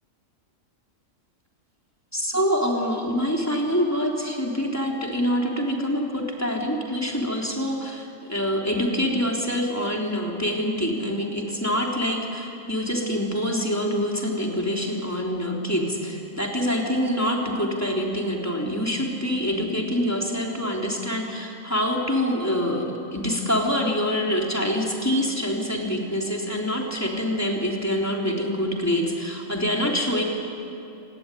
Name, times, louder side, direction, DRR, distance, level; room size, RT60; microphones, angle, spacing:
voice 1, 2.1-22.8 23.1-30.2, equal, 10° left, -1 dB, 3.4 m, -25 dB
27.0 x 18.0 x 10.0 m, 2.7 s
omnidirectional pair, 1.4 m